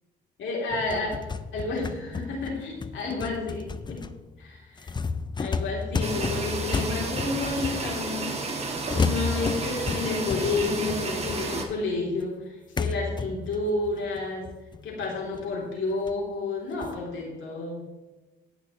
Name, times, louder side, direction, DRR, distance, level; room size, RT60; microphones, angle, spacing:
voice 1, 0.4-1.1 1.5-4.0 4.4-4.9 5.4-8.6 8.9-14.5 14.8-17.8, left 3 dB, 75° left, -2 dB, 3.5 m, -30 dB
sound 1, 0.7-8.3 8.9-11.8 12.2-12.3 12.8-15.6 16.1-16.2 16.8-17.0, left 4 dB, 20° left, 0.5 m, -32 dB
sound 2, 6.0-11.6, right 3 dB, 30° right, 1.9 m, -32 dB
18.0 x 6.1 x 3.2 m, 1.2 s
cardioid pair, 90°, 20 cm